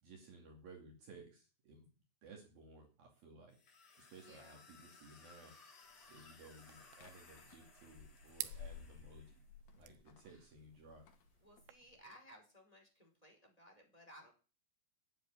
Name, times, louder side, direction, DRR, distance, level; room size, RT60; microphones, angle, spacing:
voice 1, 0.0-1.9 2.2-3.6 4.0-5.5 6.1-9.4 9.8-11.0, right 3 dB, 50° right, 1 dB, 3.9 m, -58 dB
sound 1, 3.5-9.5, left 4 dB, 35° left, 3.7 m, -62 dB
voice 2, 4.2-4.6 10.1-10.5 11.4-14.3, equal, 10° left, 2 dB, 4.3 m, -60 dB
sound 2, 5.9-12.0, left 7 dB, 60° left, 3.3 m, -57 dB
sound 3, 6.7-11.7, right 15 dB, 80° right, 3.3 m, -53 dB
10.5 x 8.6 x 9.9 m, 0.35 s
omnidirectional pair, 5.8 m